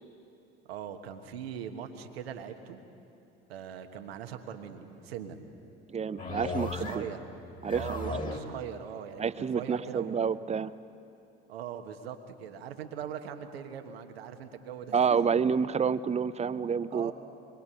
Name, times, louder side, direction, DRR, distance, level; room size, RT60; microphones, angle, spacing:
voice 1, 0.7-2.8 3.5-5.5 6.5-7.2 7.7-9.2 9.5-10.3 11.5-15.2 16.9-17.1, right 8 dB, 75° right, 6 dB, 1.4 m, -41 dB
voice 2, 5.9-7.0 7.6-8.3 9.2-10.7 14.9-17.1, right 6 dB, 20° right, 15 dB, 0.6 m, -29 dB
sound 1, 6.2-7.2 7.5-8.6, left 3 dB, 25° left, 2.5 m, -36 dB
24.5 x 21.0 x 5.7 m, 2.7 s
figure-of-eight pair, 65°, 31 cm